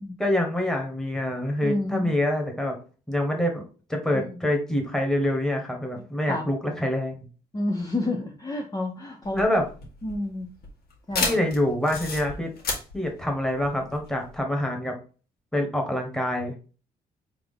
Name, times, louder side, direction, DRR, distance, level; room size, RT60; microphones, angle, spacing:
voice 1, 0.2-2.7 3.1-3.6 3.9-7.3 9.3-9.7 11.2-12.5 12.9-14.9 15.5-16.5, left 1 dB, 5° left, 1 dB, 1.5 m, -26 dB
voice 2, 1.6-2.1 4.1-4.3 5.9-6.0 6.3-6.4 7.5-9.4 10.0-10.5 11.1-11.4, left 2 dB, 20° left, 1 dB, 0.8 m, -29 dB
sound 1, 9.2-14.4, left 3 dB, 65° left, 1.6 m, -32 dB
3.8 x 2.8 x 3.8 m, 0.36 s
supercardioid pair, 65°, 17 cm